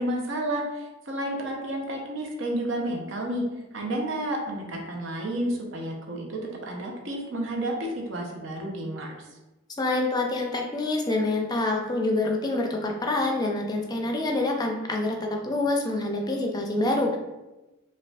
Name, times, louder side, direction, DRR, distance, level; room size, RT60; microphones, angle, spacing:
voice 1, 0.0-3.4 3.7-9.3, right 1 dB, 70° right, 0 dB, 0.7 m, -31 dB
voice 2, 9.8-17.2, left 2 dB, 20° left, 1 dB, 0.4 m, -26 dB
4.9 x 2.3 x 2.3 m, 1.1 s
head